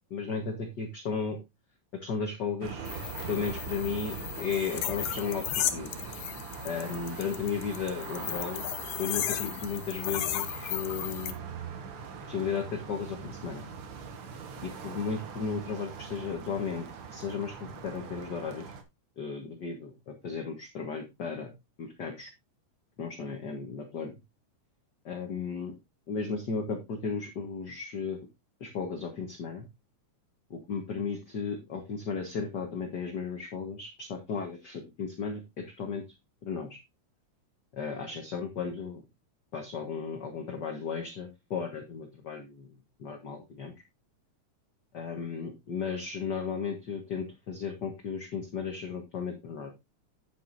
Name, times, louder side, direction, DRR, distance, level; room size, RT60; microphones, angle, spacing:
voice 1, 0.1-1.4 2.0-2.9 3.3-5.9 6.6-8.7 9.0-11.5 12.3-13.6 14.6-16.9 17.1-17.5 17.8-18.7 19.2-21.5 21.8-22.3 23.0-24.1 25.0-25.7 26.1-28.2 28.6-29.7 30.5-36.0 36.4-36.8 37.7-39.0 39.5-42.7 43.0-43.7 44.9-49.7, left 5 dB, 45° left, 4 dB, 1.5 m, -35 dB
sound 1, 2.6-18.8, right 6 dB, 55° right, 1.9 m, -42 dB
sound 2, 2.9-11.3, left 11 dB, 85° left, 2.6 m, -35 dB
9.5 x 9.3 x 2.6 m, 0.21 s
omnidirectional pair, 3.5 m